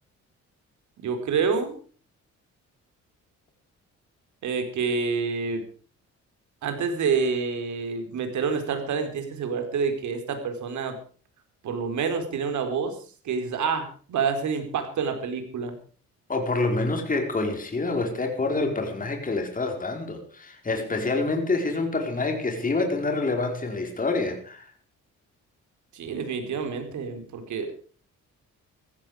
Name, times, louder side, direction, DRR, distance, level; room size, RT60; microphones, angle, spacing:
voice 1, 1.0-1.8 4.4-5.6 6.6-11.0 11.6-12.9 13.2-15.8 25.9-27.8, right 5 dB, 70° right, 4.5 m, -28 dB
voice 2, 16.3-24.7, left 3 dB, 25° left, 4.8 m, -27 dB
15.5 x 15.0 x 5.1 m
cardioid pair, 90°, 30 cm